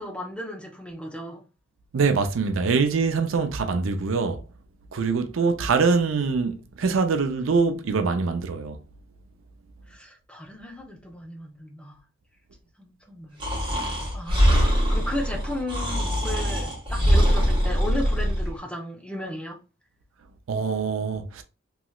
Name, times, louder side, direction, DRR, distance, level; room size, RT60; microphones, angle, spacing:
voice 1, 0.0-1.4 9.9-12.0 12.8-13.4 13.8-19.6, left 1 dB, 5° left, 0.6 m, -35 dB
voice 2, 1.9-4.4 4.9-8.8 20.5-21.4, right 4 dB, 90° right, 0.5 m, -24 dB
Breathing, 13.4-18.5, equal, 25° right, 1.3 m, -22 dB
3.1 x 2.9 x 2.3 m
head